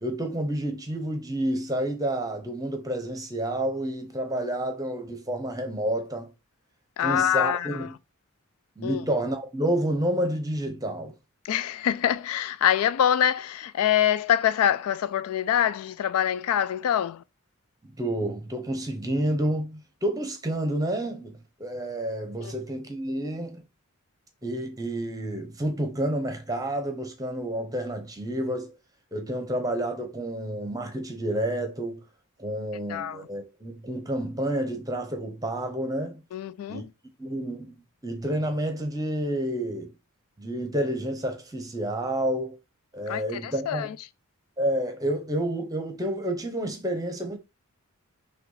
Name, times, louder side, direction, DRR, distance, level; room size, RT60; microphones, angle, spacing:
voice 1, 0.0-6.3 7.0-7.9 8.8-11.1 17.8-23.6 24.4-28.7 29.1-32.0 32.4-36.2 36.7-36.9 37.2-37.7 38.0-39.9 40.4-42.6 42.9-43.9 44.6-47.4, right 1 dB, 15° right, 0.8 m, -29 dB
voice 2, 7.0-7.9 8.8-9.0 11.4-17.2 22.4-22.5 32.9-33.2 36.3-36.9 43.1-44.0, left 10 dB, 70° left, 0.3 m, -25 dB
5.7 x 2.4 x 3.9 m
head